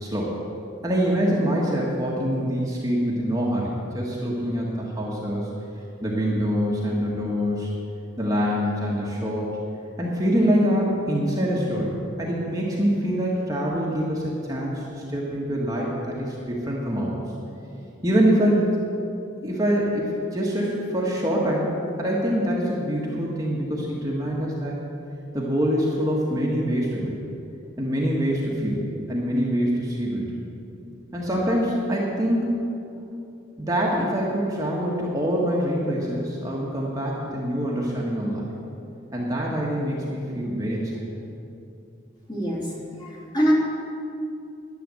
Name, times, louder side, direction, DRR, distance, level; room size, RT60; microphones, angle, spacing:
voice 1, 0.0-0.3 0.8-5.5 6.0-7.7 8.2-9.6 10.0-17.2 18.0-18.8 19.4-24.8 25.3-27.2 27.8-30.4 31.1-32.5 33.6-38.5 39.1-41.1, equal, 20° right, -4 dB, 1.6 m, -25 dB
voice 2, 42.3-42.7 43.0-43.5, equal, 20° left, -4 dB, 2.7 m, -24 dB
10.5 x 10.5 x 7.7 m, 2.7 s
head